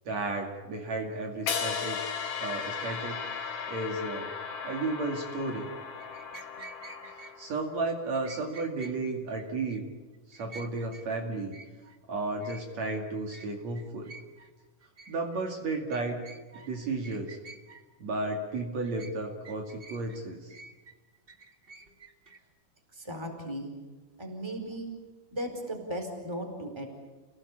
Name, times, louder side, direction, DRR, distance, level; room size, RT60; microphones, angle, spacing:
voice 1, 0.1-2.0 2.4-3.2 3.7-4.4 4.6-5.7 7.4-9.9 10.3-11.5 12.1-14.1 15.1-16.3 16.7-17.4 18.0-20.5, right 3 dB, 60° right, 2 dB, 3.5 m, -33 dB
sound 1, 1.5-7.6, left 6 dB, 65° left, 3.6 m, -36 dB
sound 2, 6.0-7.3 8.1-9.0 9.3-9.8 10.1-11.0 11.3-12.0 12.4-12.9 13.3-13.5 13.7-14.5 14.8-15.4 15.9-16.7 17.0-17.8 18.4-19.1 19.4-20.2 20.5-22.4, right 3 dB, 30° right, 1.1 m, -50 dB
voice 2, 22.9-23.7 24.2-24.9 25.3-26.9, equal, 10° right, 3 dB, 4.2 m, -36 dB
29.5 x 18.0 x 8.7 m, 1.2 s
omnidirectional pair, 3.7 m